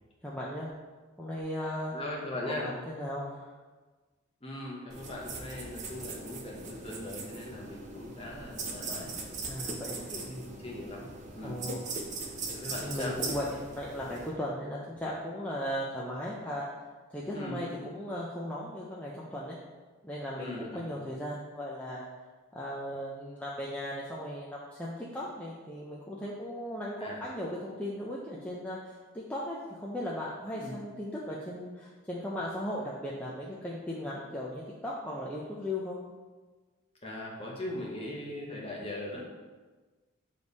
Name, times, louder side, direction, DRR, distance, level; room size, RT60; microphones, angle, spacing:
voice 1, 0.2-0.7 1.2-1.9 2.5-3.5 9.5-10.6 11.4-11.9 12.8-16.6 17.1-19.6 20.0-22.0 22.5-36.0, left 1 dB, 5° left, -6 dB, 0.5 m, -37 dB
voice 2, 1.9-2.7 4.4-9.1 9.9-11.1 11.3-11.6 11.9-12.0 12.5-13.2 17.3-17.6 20.4-20.8 27.0-27.2 30.5-30.8 37.0-39.2, left 1 dB, 25° left, -3 dB, 1.1 m, -39 dB
sound 1, 4.9-14.3, right 3 dB, 35° right, 0.6 m, -40 dB
7.0 x 3.3 x 4.1 m, 1.3 s
head